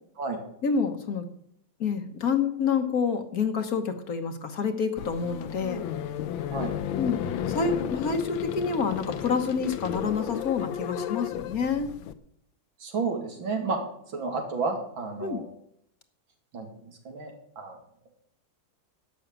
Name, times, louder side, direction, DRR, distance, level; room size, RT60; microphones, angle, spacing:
voice 1, 0.6-1.3 1.8-5.8 7.0-11.9 15.2-15.4, left 5 dB, 55° left, 7 dB, 1.5 m, -28 dB
sound 1, 5.0-12.1, left 10 dB, 90° left, 1.5 m, -33 dB
voice 2, 12.8-13.8 14.1-15.4 16.5-17.8, right 4 dB, 85° right, 2 dB, 3.2 m, -31 dB
12.0 x 6.5 x 8.7 m, 0.72 s
omnidirectional pair, 2.1 m